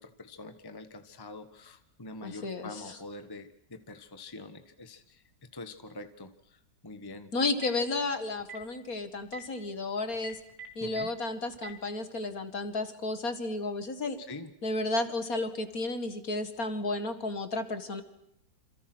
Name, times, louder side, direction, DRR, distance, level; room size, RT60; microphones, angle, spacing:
voice 1, 0.0-5.2 5.5-7.3 10.8-11.1 14.3-14.5, left 2 dB, 15° left, 9 dB, 1.2 m, -45 dB
voice 2, 2.2-3.0 7.3-10.4 10.8-14.2 14.6-18.0, left 2 dB, 50° left, 9 dB, 2.3 m, -32 dB
Telephone, 7.4-7.8 8.4-8.6 9.2-9.4 10.1-11.0 11.5-11.7, right 6 dB, 50° right, 4.6 m, -43 dB
28.0 x 27.0 x 6.2 m, 0.77 s
omnidirectional pair, 2.0 m